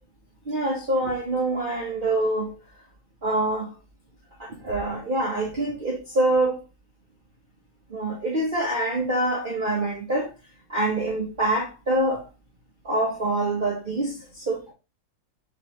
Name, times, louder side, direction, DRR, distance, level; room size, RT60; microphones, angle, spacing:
voice 1, 0.5-2.6 3.2-3.7 4.4-6.6 7.9-10.3 10.7-12.3 12.8-14.7, right 1 dB, 35° right, 1.0 m, -25 dB
4.7 x 3.1 x 3.1 m
omnidirectional pair, 1.8 m